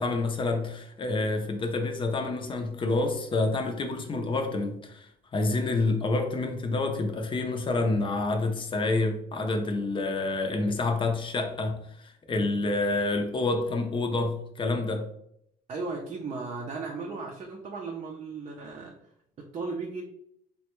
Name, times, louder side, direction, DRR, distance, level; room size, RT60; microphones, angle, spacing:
voice 1, 0.0-15.1, left 2 dB, 30° left, 0.5 m, -28 dB
voice 2, 15.7-18.9 19.4-20.0, right 4 dB, 40° right, 0.5 m, -36 dB
3.3 x 2.2 x 2.9 m
cardioid pair, 110°, 17 cm